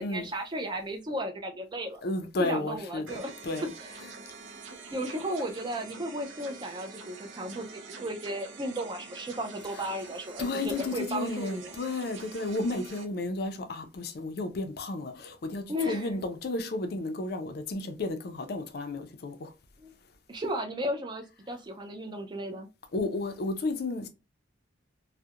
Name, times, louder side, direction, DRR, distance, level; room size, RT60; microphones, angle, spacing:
voice 1, 0.0-2.0 2.4-3.3 3.6-3.9 4.9-11.8 15.7-16.1 19.8-19.9 20.3-22.7, equal, 25° right, 0.3 m, -34 dB
voice 2, 2.0-3.7 10.4-19.5 22.9-24.1, left 2 dB, 55° left, 0.4 m, -33 dB
sound 1, 3.1-13.1, right 4 dB, 80° right, 0.5 m, -46 dB
2.3 x 2.1 x 2.7 m
head